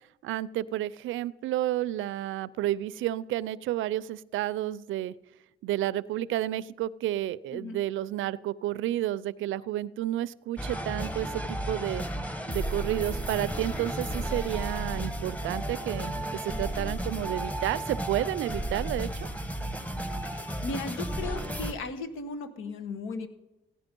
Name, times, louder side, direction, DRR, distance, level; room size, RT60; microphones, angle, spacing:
voice 1, 0.2-5.1 5.6-12.0 12.5-19.3, right 13 dB, 80° right, 19 dB, 0.5 m, -31 dB
sound 1, 10.6-21.7, right 1 dB, 5° left, 1.3 m, -33 dB
voice 2, 20.3-23.3, left 3 dB, 80° left, 9 dB, 1.4 m, -36 dB
16.5 x 9.8 x 5.3 m, 1.0 s
cardioid pair, 90°, 20 cm